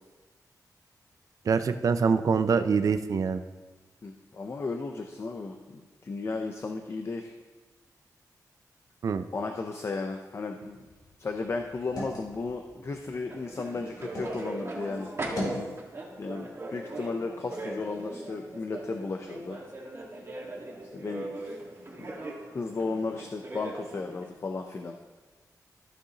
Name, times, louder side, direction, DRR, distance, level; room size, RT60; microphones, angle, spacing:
voice 1, 1.5-3.4 9.0-9.2, right 5 dB, 60° right, 10 dB, 0.5 m, -24 dB
voice 2, 4.0-7.3 9.3-10.9 11.2-15.7 16.2-19.6 20.9-21.6 22.0-22.2 22.5-25.0, left 3 dB, 40° left, 4 dB, 0.6 m, -35 dB
sound 1, 10.6-14.4 14.8-15.7, equal, 75° left, 2.8 m, -40 dB
sound 2, 13.3-24.3, right 2 dB, 40° right, 1.7 m, -39 dB
14.0 x 6.5 x 2.9 m, 1.2 s
wide cardioid pair, 120°, 7 cm